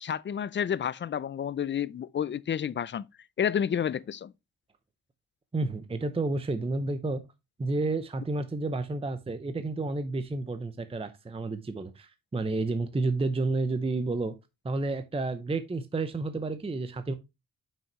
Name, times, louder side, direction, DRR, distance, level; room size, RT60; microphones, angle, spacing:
voice 1, 0.0-3.1 3.4-4.3, left 8 dB, 35° left, 0.4 m, -30 dB
voice 2, 5.5-7.2 7.6-14.3 14.6-17.1, right 3 dB, 15° right, 0.7 m, -30 dB
7.3 x 6.3 x 3.0 m
wide cardioid pair, 140°, 36 cm